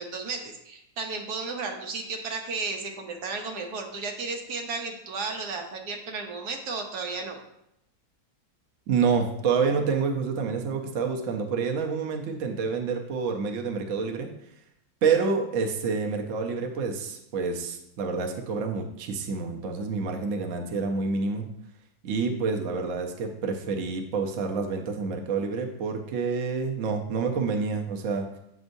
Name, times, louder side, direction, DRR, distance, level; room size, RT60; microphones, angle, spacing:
voice 1, 0.0-7.4, right 4 dB, 85° right, 2 dB, 1.4 m, -34 dB
voice 2, 8.9-14.3 15.0-21.5 22.0-28.2, right 5 dB, 60° right, 2 dB, 1.1 m, -28 dB
7.7 x 6.2 x 2.6 m, 0.79 s
omnidirectional pair, 1.7 m